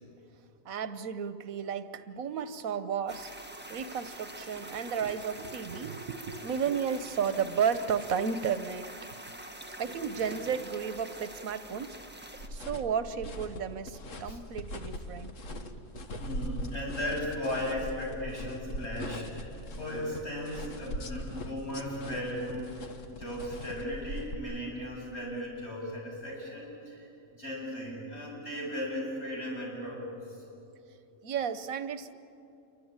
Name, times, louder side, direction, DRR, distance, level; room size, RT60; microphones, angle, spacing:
voice 1, 0.6-3.3 3.7-9.1 9.8-12.0 12.5-16.1 21.7-21.8 31.2-32.1, right 7 dB, 90° right, 12 dB, 1.4 m, -33 dB
sound 1, 3.1-12.5, right 1 dB, 10° right, 1.4 m, -45 dB
sound 2, 12.3-24.3, equal, 65° left, 1.8 m, -41 dB
voice 2, 16.1-30.4, left 1 dB, 50° left, -3 dB, 8.0 m, -37 dB
28.0 x 24.0 x 8.9 m, 2.8 s
omnidirectional pair, 1.4 m